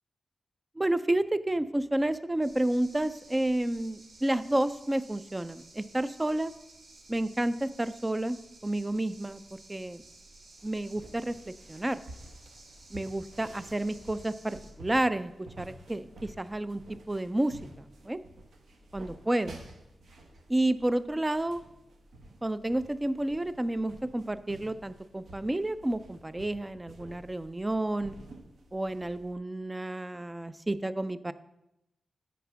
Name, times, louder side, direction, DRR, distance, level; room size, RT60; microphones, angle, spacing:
voice 1, 0.8-6.5 7.1-9.4 9.7-10.0 10.6-12.0 12.9-18.2 18.9-19.6 20.5-21.6 22.4-28.2 28.7-31.3, right 1 dB, 15° right, 13 dB, 0.4 m, -30 dB
sound 1, 2.4-14.7, right 2 dB, 60° right, 2.0 m, -54 dB
sound 2, 10.6-29.3, right 1 dB, 80° right, 1.2 m, -51 dB
9.3 x 4.2 x 5.8 m, 0.89 s
wide cardioid pair, 100°, 0 cm